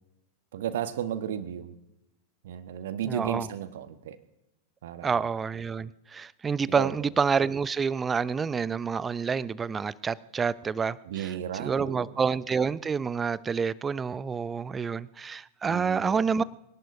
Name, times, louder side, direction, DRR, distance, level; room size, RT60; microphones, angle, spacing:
voice 1, 0.5-1.7 2.4-4.2 4.8-5.3 6.7-7.0 11.0-12.1 15.7-16.3, right 10 dB, 55° right, 11 dB, 1.2 m, -34 dB
voice 2, 3.1-3.5 5.0-11.3 11.6-16.4, right 5 dB, 15° right, 21 dB, 0.5 m, -28 dB
24.5 x 18.0 x 2.7 m, 0.89 s
figure-of-eight pair, 90°, 0 cm